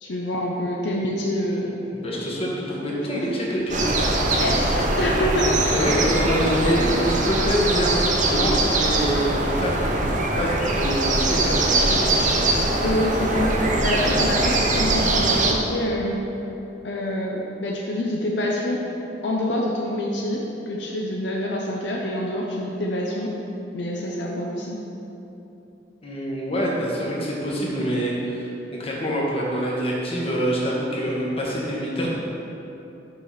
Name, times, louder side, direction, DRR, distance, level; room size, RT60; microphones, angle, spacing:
voice 1, 0.0-1.8 2.8-3.2 4.3-5.5 6.6-6.7 12.8-13.5 13.8-16.2 16.8-18.9 19.2-23.3 23.7-24.8, left 1 dB, 70° left, -2 dB, 0.7 m, -26 dB
voice 2, 1.9-4.1 5.7-7.9 8.2-12.5 26.0-28.5 28.8-32.2, equal, 30° left, -4 dB, 1.3 m, -26 dB
sound 1, 3.7-15.5, right 2 dB, 45° right, 0.7 m, -22 dB
6.5 x 4.9 x 5.7 m, 3.0 s
head